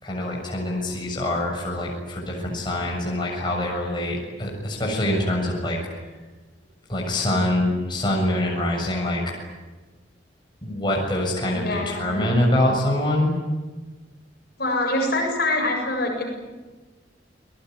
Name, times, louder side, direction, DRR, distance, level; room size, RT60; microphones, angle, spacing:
voice 1, 0.0-5.8 6.9-9.2 10.6-13.3, left 1 dB, 25° left, -1 dB, 7.1 m, -24 dB
voice 2, 11.6-12.2 14.6-16.2, left 1 dB, 55° left, 1 dB, 7.8 m, -24 dB
29.5 x 20.0 x 9.7 m, 1.2 s
head